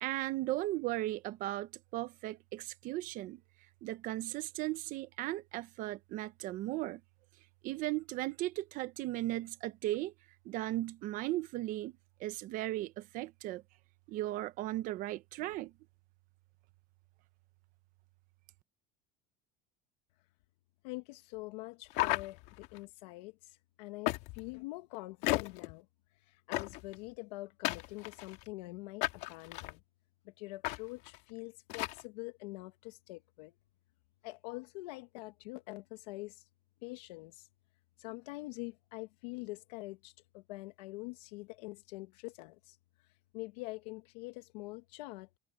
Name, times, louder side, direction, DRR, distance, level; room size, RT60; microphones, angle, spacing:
voice 1, 0.0-3.4 3.8-7.0 7.6-10.1 10.4-11.9 12.2-13.6 14.1-15.7, right 16 dB, 40° right, 1.0 m, -36 dB
voice 2, 20.8-25.9 26.2-29.8 30.2-33.5 34.2-36.5 36.8-37.5 38.0-45.3, left 22 dB, 85° left, 1.4 m, -45 dB
sound 1, 21.9-22.8 24.1-24.5 25.2-25.7 26.5-27.0 27.6-28.5 29.0-29.7 30.6-30.8 31.1-31.2 31.7-32.0, left 20 dB, 55° left, 2.0 m, -34 dB
cardioid pair, 175°, 21 cm